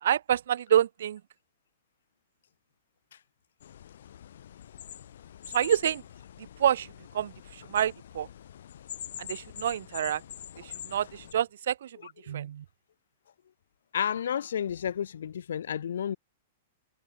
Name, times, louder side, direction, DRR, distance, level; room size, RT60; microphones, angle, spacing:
voice 1, 0.0-1.2 5.5-6.0 6.6-6.9 7.1-8.3 9.2-10.2 10.6-11.9 12.3-12.6, right 10 dB, 70° right, 1.1 m, -27 dB
sound 1, 3.6-11.3, left 10 dB, 70° left, 5.9 m, -45 dB
voice 2, 13.9-16.2, left 9 dB, 85° left, 5.4 m, -31 dB
hypercardioid pair, 170°, 0 cm